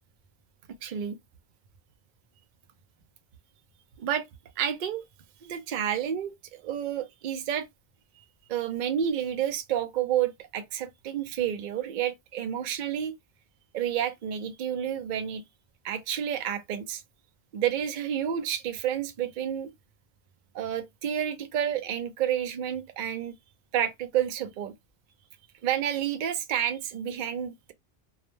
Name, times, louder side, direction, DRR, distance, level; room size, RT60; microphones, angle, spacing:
voice 1, 0.8-1.2 4.0-4.3 4.6-5.0 5.4-7.7 8.5-13.1 13.7-15.4 15.8-17.0 17.5-19.7 20.5-23.4 23.7-24.7 25.6-27.7, right 9 dB, 60° right, 0.6 m, -30 dB
2.4 x 2.0 x 3.0 m
omnidirectional pair, 1.1 m